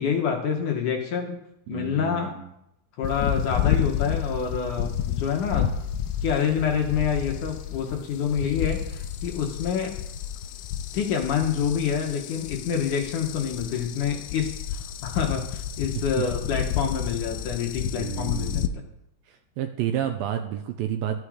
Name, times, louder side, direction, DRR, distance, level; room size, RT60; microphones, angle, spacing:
voice 1, 0.0-1.4 1.7-2.4 3.0-5.7 6.2-9.9 10.9-18.8, left 7 dB, 65° left, 2 dB, 2.2 m, -27 dB
voice 2, 1.7-2.5 16.0-16.1 17.9-18.6 19.3-21.2, right 10 dB, 80° right, 6 dB, 2.2 m, -30 dB
sound 1, 3.0-18.7, left 9 dB, 85° left, 2.0 m, -30 dB
13.0 x 12.0 x 5.0 m, 0.83 s
omnidirectional pair, 4.7 m